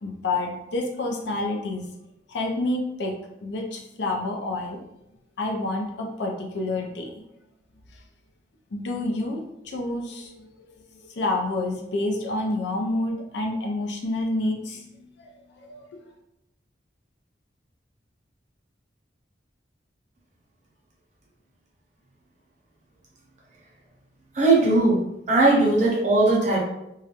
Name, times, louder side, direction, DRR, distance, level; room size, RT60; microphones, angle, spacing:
voice 1, 0.0-1.9 2.3-3.1 3.4-4.8 5.4-7.2 8.7-10.5 10.9-15.8, left 2 dB, 70° left, 2 dB, 0.5 m, -29 dB
voice 2, 24.3-25.0 25.3-26.6, right 2 dB, 40° right, -3 dB, 0.7 m, -19 dB
2.3 x 2.0 x 2.8 m, 0.85 s
head